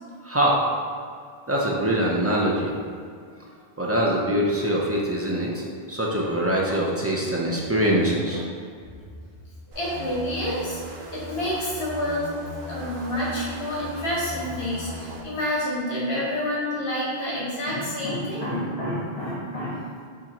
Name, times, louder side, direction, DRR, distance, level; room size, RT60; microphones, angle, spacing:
voice 1, 0.2-0.7 1.5-2.7 3.8-8.4, right 1 dB, 20° right, -4 dB, 0.4 m, -23 dB
voice 2, 9.7-10.8 11.1-12.3 12.7-19.8, left 1 dB, 80° left, -6 dB, 1.3 m, -28 dB
sound 1, 9.7-15.2, equal, 85° right, 1.0 m, -38 dB
6.9 x 2.5 x 2.9 m, 2.1 s
omnidirectional pair, 1.0 m